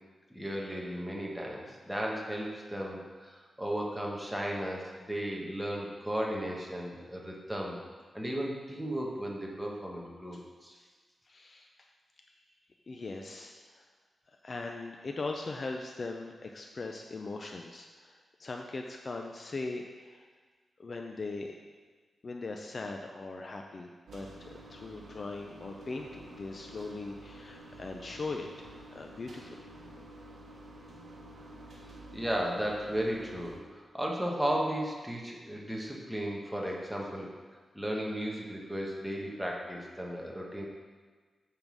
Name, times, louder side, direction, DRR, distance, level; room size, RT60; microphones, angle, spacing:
voice 1, 0.3-7.8 8.1-10.8 32.1-37.3 37.7-40.7, equal, 5° right, -2 dB, 1.2 m, -35 dB
voice 2, 11.3-11.9 12.3-12.5 12.9-13.9 14.4-20.3 20.8-21.6 22.2-28.5 28.7-29.7, left 3 dB, 40° left, 2 dB, 0.5 m, -40 dB
sound 1, 24.1-33.6, right 1 dB, 60° right, 1.3 m, -50 dB
8.8 x 3.8 x 6.1 m, 1.4 s
wide cardioid pair, 140°, 0 cm